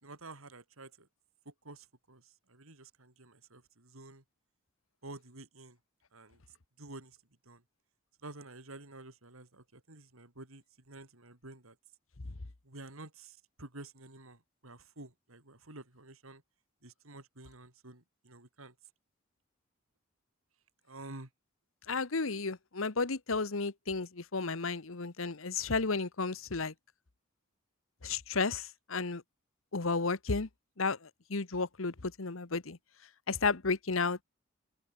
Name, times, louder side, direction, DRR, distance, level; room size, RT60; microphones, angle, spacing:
voice 1, 0.0-1.1 1.5-4.2 5.0-5.8 6.1-6.4 6.8-7.2 7.4-7.6 8.2-11.8 12.6-16.4 16.8-18.7 20.9-21.3, right 2 dB, 85° right, 3.8 m, -50 dB
voice 2, 21.9-26.7 28.0-29.2 29.7-30.5 30.8-32.8 33.3-34.2, left 4 dB, 75° left, 1.2 m, -33 dB
open air
head